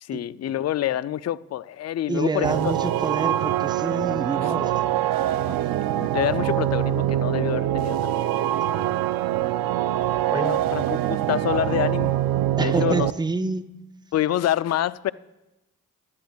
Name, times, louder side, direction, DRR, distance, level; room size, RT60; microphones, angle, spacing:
voice 1, 0.0-2.7 4.4-4.5 6.0-8.2 10.3-11.0 11.3-12.1 12.6-13.1 14.1-15.1, left 12 dB, 50° left, 0.4 m, -27 dB
voice 2, 2.1-4.9 5.4-5.7 8.7-9.0 10.3-10.5 12.6-13.6, right 3 dB, 10° right, 0.6 m, -28 dB
sound 1, 2.4-13.1, right 13 dB, 80° right, 0.5 m, -24 dB
23.5 x 12.0 x 2.3 m
supercardioid pair, 45°, 35 cm